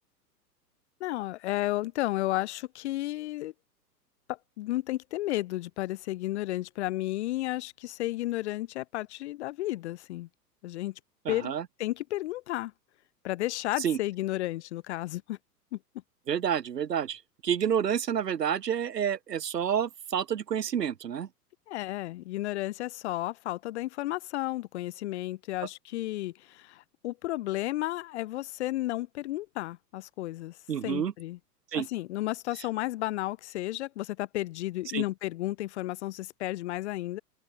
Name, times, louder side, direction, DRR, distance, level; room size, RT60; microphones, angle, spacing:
voice 1, 1.0-3.5 4.6-10.3 10.6-10.9 11.3-11.5 11.8-12.7 13.2-15.4 15.7-15.8 21.7-30.5 30.8-31.4 31.7-37.2, left 16 dB, 40° left, 1.9 m, -33 dB
voice 2, 11.3-11.6 13.8-14.0 16.3-21.3 30.7-31.1 31.7-31.9 34.9-35.0, right 8 dB, 80° right, 0.8 m, -29 dB
open air
figure-of-eight pair, 105°, 49 cm